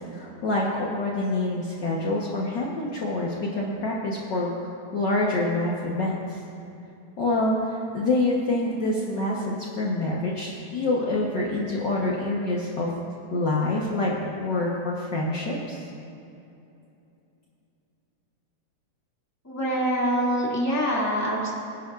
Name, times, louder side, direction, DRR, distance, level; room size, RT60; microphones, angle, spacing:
voice 1, 0.1-6.4 7.2-13.0 13.3-15.9, left 2 dB, 75° left, -4 dB, 1.0 m, -26 dB
voice 2, 19.4-21.5, equal, 5° left, -5 dB, 1.6 m, -25 dB
24.0 x 11.0 x 2.5 m, 2.7 s
omnidirectional pair, 3.8 m